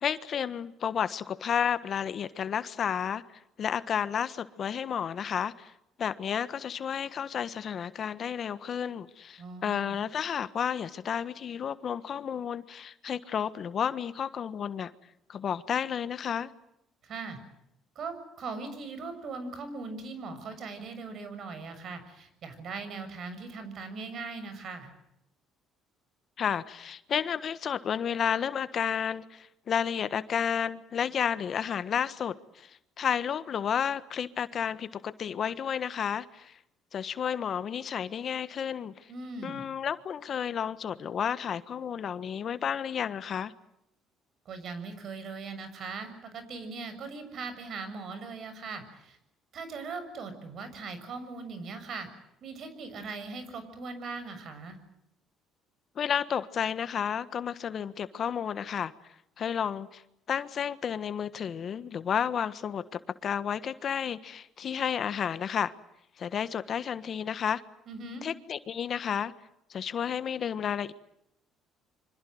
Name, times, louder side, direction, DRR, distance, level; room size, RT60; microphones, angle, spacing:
voice 1, 0.0-3.2 3.6-5.7 6.0-14.9 15.3-16.5 26.4-36.5 36.9-39.1 39.4-43.5 55.9-58.9 59.4-60.0 60.3-65.7 66.2-67.6 68.2-69.3 69.7-70.9, left 8 dB, 50° left, 1.4 m, -31 dB
voice 2, 9.4-10.0 17.0-17.4 18.0-24.9 39.1-39.6 44.5-49.2 49.5-52.1 52.4-54.8 67.9-68.3, right 4 dB, 55° right, 6.9 m, -40 dB
26.5 x 25.5 x 7.9 m
supercardioid pair, 75°, 0 cm